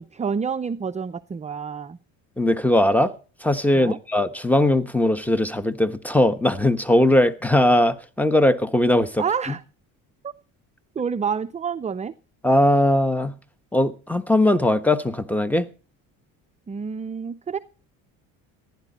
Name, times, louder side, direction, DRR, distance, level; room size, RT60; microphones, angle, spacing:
voice 1, 0.0-2.0 3.7-4.0 9.2-9.6 10.2-10.3 11.0-12.1 16.7-17.6, right 6 dB, 20° right, 0.5 m, -28 dB
voice 2, 2.4-3.1 3.4-9.2 12.4-13.4 13.7-15.7, left 1 dB, 5° left, 1.2 m, -19 dB
15.5 x 11.0 x 4.2 m
supercardioid pair, 75°, 40 cm